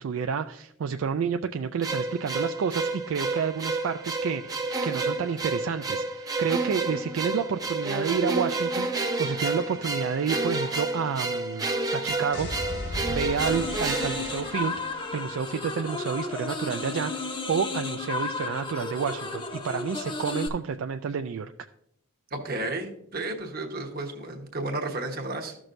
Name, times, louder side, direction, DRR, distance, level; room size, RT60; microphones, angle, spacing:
voice 1, 0.0-11.7 11.9-12.5 13.1-21.5, right 6 dB, 70° right, 7 dB, 0.3 m, -30 dB
sound 1, 1.8-15.1, right 3 dB, 15° right, 0.6 m, -30 dB
sound 2, 12.3-15.2, left 1 dB, 55° left, 1.2 m, -37 dB
sound 3, 13.4-20.5, left 3 dB, 25° left, 0.7 m, -33 dB
voice 2, 22.3-25.6, right 2 dB, 45° right, 3 dB, 1.2 m, -32 dB
13.5 x 6.1 x 2.6 m, 0.72 s
head